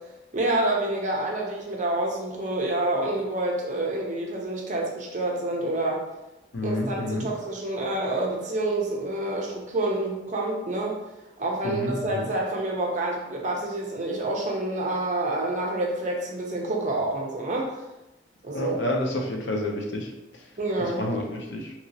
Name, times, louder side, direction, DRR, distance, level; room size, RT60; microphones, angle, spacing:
voice 1, 0.3-6.0 6.6-11.0 11.4-17.7 18.4-18.8 20.6-21.0, right 2 dB, 40° right, -2 dB, 0.6 m, -28 dB
voice 2, 6.5-7.3 11.6-12.3 18.5-20.5 20.8-21.7, left 1 dB, 70° left, 1 dB, 0.6 m, -30 dB
2.9 x 2.8 x 2.7 m, 0.95 s
head